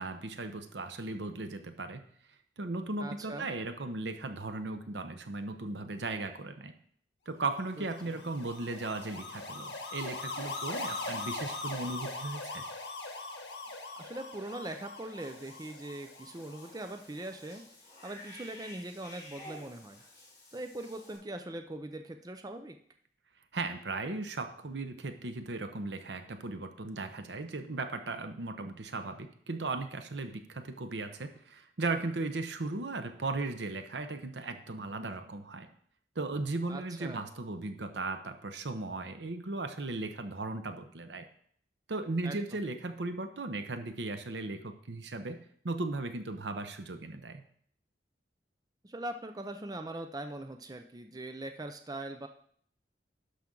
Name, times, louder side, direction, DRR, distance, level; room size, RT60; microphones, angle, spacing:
voice 1, 0.0-2.0 2.6-6.7 7.3-12.6 23.5-35.7 36.2-41.3 41.9-45.4 45.6-47.4, right 3 dB, 80° right, 8 dB, 0.8 m, -37 dB
voice 2, 3.0-3.5 7.8-8.2 14.0-17.6 18.0-20.0 20.5-22.8 36.7-37.3 42.2-42.6 48.8-52.3, right 1 dB, 20° right, 6 dB, 0.5 m, -41 dB
sound 1, 7.7-17.0, left 2 dB, 75° left, 1.7 m, -41 dB
Cat / Bathtub (filling or washing), 15.2-21.2, left 1 dB, 20° left, 3.8 m, -52 dB
11.5 x 6.0 x 3.8 m, 0.62 s
head